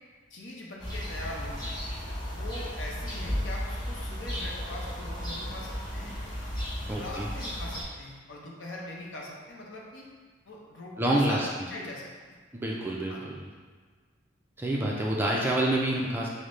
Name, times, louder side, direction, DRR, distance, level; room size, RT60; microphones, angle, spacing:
voice 1, 0.3-1.8 2.2-6.2 6.9-10.1 10.5-12.1 13.1-13.2, left 1 dB, 65° left, -3 dB, 0.7 m, -42 dB
sound 1, 0.8-7.8, equal, 20° left, 0.8 m, -34 dB
voice 2, 6.9-7.3 11.0-11.5 12.5-13.1 13.4-13.5 14.6-16.3, right 1 dB, 10° right, -3 dB, 0.3 m, -27 dB
5.1 x 2.1 x 3.1 m, 1.5 s
head